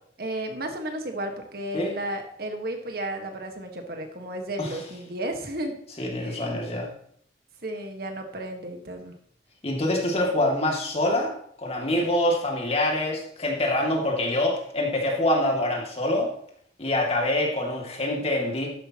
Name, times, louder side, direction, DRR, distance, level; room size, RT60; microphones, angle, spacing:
voice 1, 0.2-5.8 6.2-6.5 7.6-9.1, right 1 dB, 60° right, 4 dB, 1.6 m, -33 dB
voice 2, 6.0-6.9 9.6-11.3 11.6-16.3 16.8-18.7, left 1 dB, 35° left, -1 dB, 2.4 m, -25 dB
12.5 x 10.0 x 3.0 m, 0.64 s
head